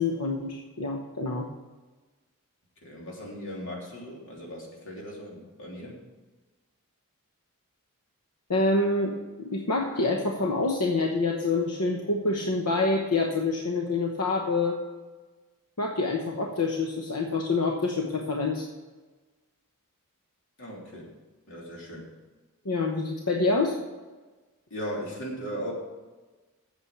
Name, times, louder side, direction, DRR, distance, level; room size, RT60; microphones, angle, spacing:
voice 1, 0.0-1.5 8.5-14.8 15.8-18.7 22.6-23.8, left 3 dB, 90° left, 2 dB, 1.0 m, -27 dB
voice 2, 2.8-6.0 20.6-21.1 21.5-22.1 24.7-25.7, equal, 60° left, -3 dB, 3.1 m, -38 dB
8.5 x 7.5 x 7.2 m, 1.3 s
head